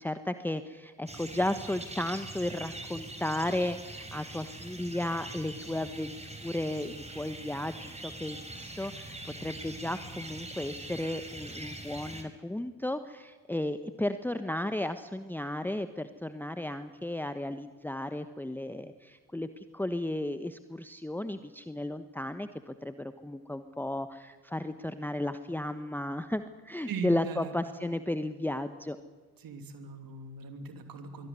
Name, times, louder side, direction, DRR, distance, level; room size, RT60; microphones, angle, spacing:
voice 1, 0.0-6.1 6.4-29.0, left 1 dB, 5° left, 10 dB, 1.2 m, -34 dB
sound 1, 1.1-12.2, right 2 dB, 15° right, 4.7 m, -43 dB
voice 2, 26.9-27.8 29.4-31.3, right 4 dB, 55° right, 7 dB, 2.9 m, -40 dB
23.5 x 17.0 x 9.7 m, 1.3 s
figure-of-eight pair, 45°, 42 cm